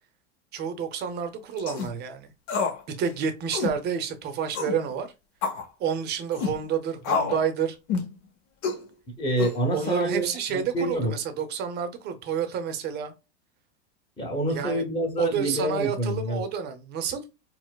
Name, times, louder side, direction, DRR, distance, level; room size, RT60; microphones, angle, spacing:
voice 1, 0.5-2.3 2.9-5.1 5.8-7.8 9.7-13.1 14.5-14.8 15.2-17.2, right 7 dB, 30° right, 0.7 m, -29 dB
sound 1, 1.6-1.9 2.5-2.8 3.1-3.2 3.5-3.8 4.5-4.8 5.4-5.7 6.3-6.6 7.0-7.4 7.9-8.1 8.6-8.8 9.4-9.9, left 5 dB, 50° left, 0.9 m, -28 dB
voice 2, 9.2-11.1 14.2-16.4, right 1 dB, 15° left, 1.0 m, -27 dB
4.3 x 2.1 x 2.2 m
supercardioid pair, 125°, 32 cm